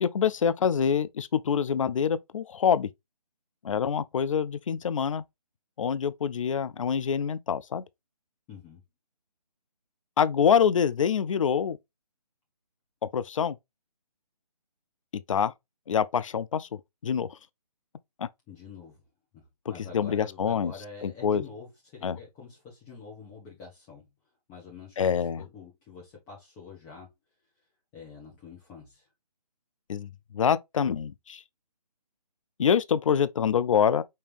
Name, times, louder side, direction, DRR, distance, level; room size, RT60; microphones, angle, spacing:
voice 1, 0.0-2.9 3.6-5.2 5.8-7.8 10.2-11.8 13.1-13.6 15.1-15.5 15.9-16.7 17.0-17.4 18.2-18.3 19.9-20.7 21.0-21.4 22.0-22.2 25.0-25.4 29.9-31.4 32.6-34.0, left 7 dB, 50° left, 0.4 m, -25 dB
voice 2, 8.5-8.8 18.5-19.0 19.3-24.1 24.5-27.1 27.6-27.7 27.9-29.1, left 5 dB, 15° left, 0.9 m, -47 dB
5.3 x 2.8 x 3.3 m
figure-of-eight pair, 155°, 21 cm